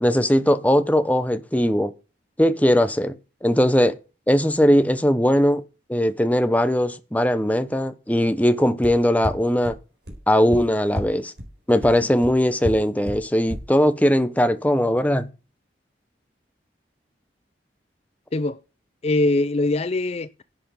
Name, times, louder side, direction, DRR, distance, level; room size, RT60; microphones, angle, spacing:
voice 1, 0.0-1.9 2.4-3.1 3.4-3.9 4.3-5.6 5.9-9.8 10.3-11.3 11.7-15.3, equal, 10° left, 0.8 m, -19 dB
sound 1, 8.8-8.9 9.2-9.3 9.6-9.7 10.1-10.2 10.5-10.6 10.9-11.0 11.4-11.5 11.8-11.9 12.2-12.3 12.6-12.7 13.1-13.2 13.5-13.6, equal, 65° right, 4.3 m, -28 dB
voice 2, 19.0-20.4, left 2 dB, 35° left, 0.4 m, -22 dB
10.5 x 7.8 x 5.5 m
head